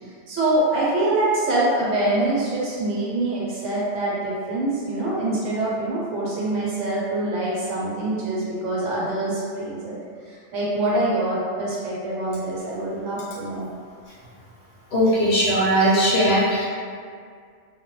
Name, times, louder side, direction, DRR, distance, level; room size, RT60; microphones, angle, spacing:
voice 1, 0.3-10.0 10.3-13.7, right 2 dB, 75° right, -7 dB, 1.1 m, -24 dB
voice 2, 14.9-16.6, equal, 65° left, -6 dB, 0.7 m, -19 dB
2.2 x 2.1 x 2.9 m, 2.2 s
omnidirectional pair, 1.2 m